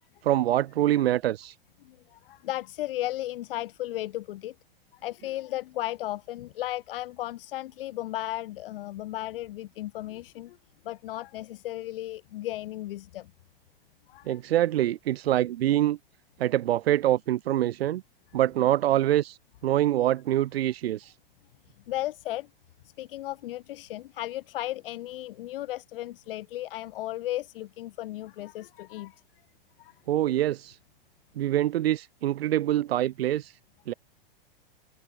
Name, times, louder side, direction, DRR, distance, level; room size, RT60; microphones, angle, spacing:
voice 1, 0.2-1.6 14.3-16.0 16.4-18.0 18.3-21.1 30.1-30.8 31.4-33.5 33.9-34.0, right 13 dB, 90° right, 0.5 m, -25 dB
voice 2, 1.8-4.5 5.0-10.6 10.8-13.3 14.1-14.4 21.9-22.5 23.0-29.2 29.8-29.9, left 15 dB, 70° left, 1.4 m, -35 dB
hypercardioid pair, 120°, 29 cm